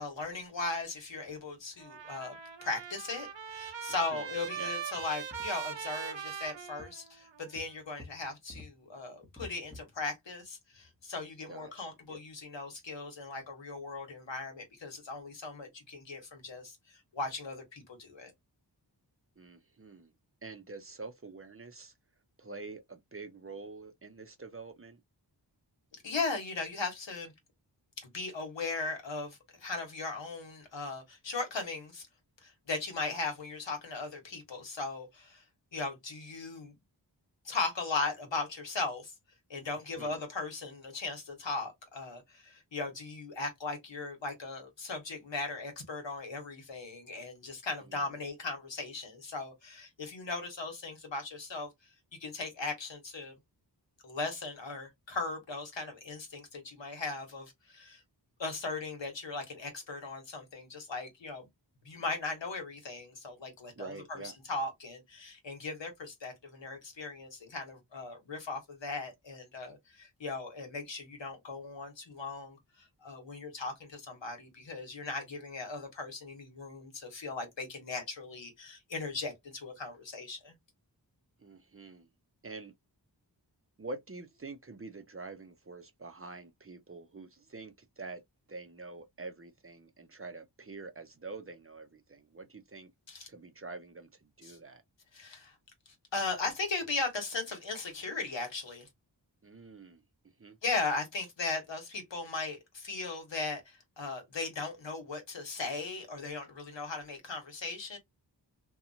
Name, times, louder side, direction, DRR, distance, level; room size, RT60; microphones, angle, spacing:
voice 1, 0.0-18.3 26.0-27.3 28.0-32.1 32.4-35.4 35.7-36.7 37.4-39.1 39.5-51.7 52.2-53.3 54.0-58.0 58.4-61.5 61.8-80.5 93.1-93.3 94.4-94.6 95.1-95.5 96.1-98.9 100.6-108.0, left 3 dB, 80° left, 1.2 m, -38 dB
Trumpet, 1.8-7.4, right 8 dB, 80° right, 0.7 m, -41 dB
sound 1, 3.2-3.3 3.5-3.7 4.1-4.2 5.0-5.7 6.3-6.5 6.8-6.9 7.6-8.7 9.2-10.0 10.4-10.5 10.7-11.0 11.6-11.7, left 2 dB, ahead, 0.9 m, -51 dB
voice 2, 11.5-12.2 19.4-20.1 20.4-21.9 22.4-25.0 40.0-40.2 47.9-48.0 63.8-64.3 81.4-82.1 82.4-82.7 83.8-88.2 88.5-92.9 93.3-94.8 99.4-100.0 100.4-100.6, right 3 dB, 30° right, 0.6 m, -46 dB
2.9 x 2.3 x 2.6 m
wide cardioid pair, 55°, 43 cm